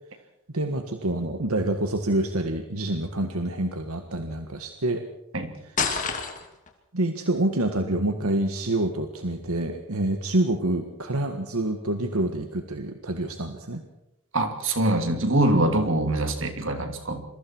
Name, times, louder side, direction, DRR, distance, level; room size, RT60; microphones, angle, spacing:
voice 1, 0.5-5.0 5.6-5.8 6.9-13.8, right 1 dB, 90° right, 6 dB, 1.7 m, -27 dB
sound 1, 5.8-6.7, left 5 dB, 35° left, 2.8 m, -27 dB
voice 2, 14.3-17.2, right 1 dB, 60° right, 6 dB, 2.9 m, -24 dB
28.0 x 23.0 x 4.6 m, 0.87 s
head